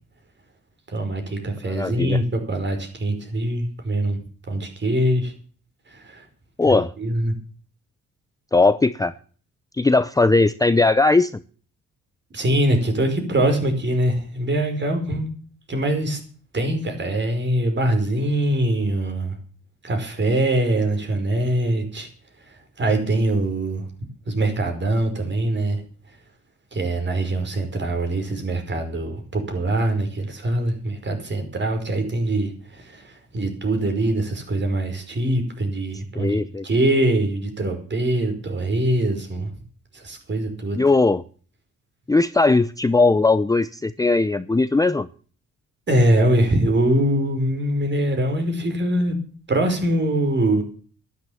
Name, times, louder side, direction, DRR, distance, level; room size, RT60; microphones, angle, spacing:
voice 1, 0.9-4.2 4.5-5.3 5.9-6.2 6.6-7.3 12.3-15.3 15.7-16.2 16.5-19.4 19.8-22.1 22.8-23.9 24.3-25.8 26.7-39.5 39.9-40.8 45.9-49.2 49.5-50.6, right 1 dB, 40° right, 6 dB, 5.2 m, -23 dB
voice 2, 1.7-2.2 6.6-6.9 8.5-9.1 9.8-11.3 36.2-36.6 40.7-41.2 42.1-45.1, left 3 dB, 10° left, 14 dB, 0.6 m, -18 dB
12.0 x 11.0 x 7.1 m, 0.42 s
cardioid pair, 90°, 30 cm